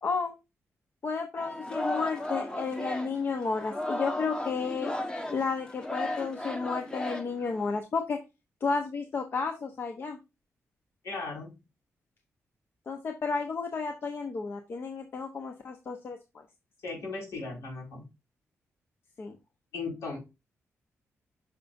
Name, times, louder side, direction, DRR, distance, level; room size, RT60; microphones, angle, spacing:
voice 1, 0.0-0.3 1.0-4.9 5.3-8.2 8.6-10.2 12.9-16.4 19.2-19.3, left 4 dB, 50° left, 4 dB, 1.0 m, -32 dB
Singing, 1.4-7.8, left 1 dB, 15° left, 1.1 m, -35 dB
voice 2, 11.0-11.5 16.8-18.0 19.7-20.2, left 3 dB, 80° left, -2 dB, 5.1 m, -37 dB
8.7 x 6.0 x 2.6 m, 0.26 s
wide cardioid pair, 130°, 5 cm